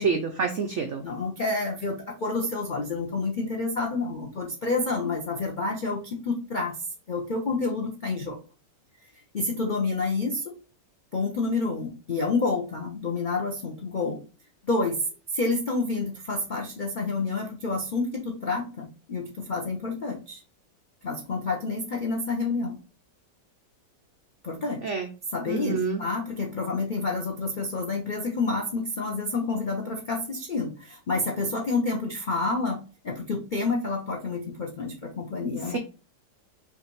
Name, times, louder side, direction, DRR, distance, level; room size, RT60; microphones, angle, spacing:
voice 1, 0.0-1.0 24.8-25.1 25.5-26.0, right 5 dB, 80° right, 5 dB, 0.6 m, -27 dB
voice 2, 1.0-6.8 7.1-8.4 9.3-10.5 11.1-14.2 14.7-15.0 15.3-20.4 21.0-22.8 24.4-24.8 25.3-32.8 33.0-35.8, left 3 dB, 75° left, 0 dB, 0.4 m, -29 dB
5.6 x 2.5 x 3.1 m, 0.34 s
omnidirectional pair, 1.9 m